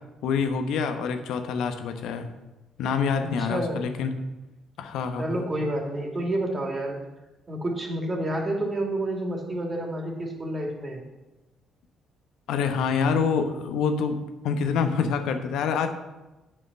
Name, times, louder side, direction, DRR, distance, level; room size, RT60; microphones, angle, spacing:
voice 1, 0.2-2.3 2.8-4.1 4.8-5.4 12.5-14.2 14.4-15.9, left 6 dB, 70° left, 7 dB, 1.0 m, -26 dB
voice 2, 3.2-4.0 5.2-7.0 7.5-11.0, right 1 dB, 30° right, 0 dB, 2.8 m, -29 dB
8.3 x 5.6 x 7.7 m, 1.1 s
hypercardioid pair, 50°, 0 cm